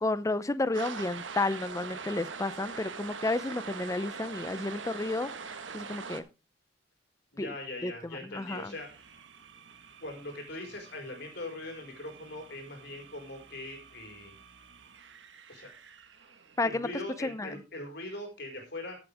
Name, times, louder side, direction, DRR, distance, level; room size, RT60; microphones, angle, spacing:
voice 1, 0.0-5.3 5.7-6.2 7.4-7.5 7.8-8.8 16.6-16.9 17.2-17.6, left 2 dB, 15° left, 0.5 m, -31 dB
sound 1, 0.7-6.2, right 5 dB, 90° right, 1.3 m, -41 dB
voice 2, 7.3-8.9 10.0-14.3 15.5-15.7 16.6-19.0, left 2 dB, 65° left, 4.6 m, -41 dB
sound 2, 8.4-16.9, right 6 dB, 75° right, 1.5 m, -55 dB
14.0 x 8.0 x 3.4 m
head